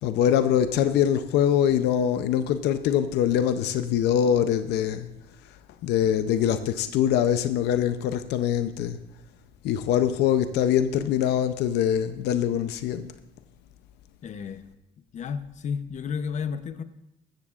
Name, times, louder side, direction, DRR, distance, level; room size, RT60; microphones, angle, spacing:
voice 1, 0.0-5.1 5.8-9.0 9.6-13.1, left 9 dB, 80° left, 0.6 m, -23 dB
voice 2, 14.2-14.7 15.1-16.8, left 6 dB, 45° left, 0.8 m, -32 dB
15.5 x 13.0 x 2.5 m
cardioid pair, 110°, 17 cm